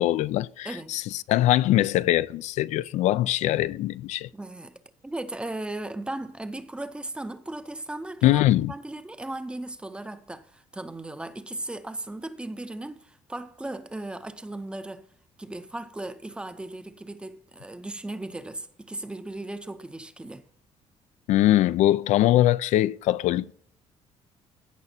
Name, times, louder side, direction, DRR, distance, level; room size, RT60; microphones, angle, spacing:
voice 1, 0.0-4.3 8.2-8.7 21.3-23.5, left 14 dB, 75° left, 0.4 m, -22 dB
voice 2, 0.6-1.0 4.3-8.4 8.7-15.1 15.4-20.4, right 2 dB, 10° right, 0.6 m, -37 dB
15.5 x 5.9 x 4.3 m
cardioid pair, 155°, 12 cm